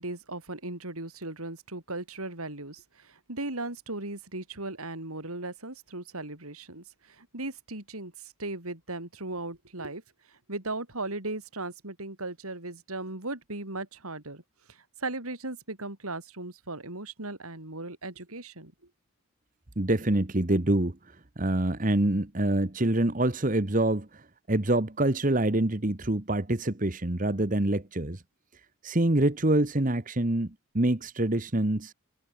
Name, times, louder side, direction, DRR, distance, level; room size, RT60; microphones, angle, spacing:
voice 1, 0.0-10.0 10.3-14.4 14.7-18.7, right 2 dB, 85° right, 4.9 m, -37 dB
voice 2, 19.8-21.0 21.4-28.2 28.8-31.9, right 1 dB, 35° right, 1.3 m, -26 dB
head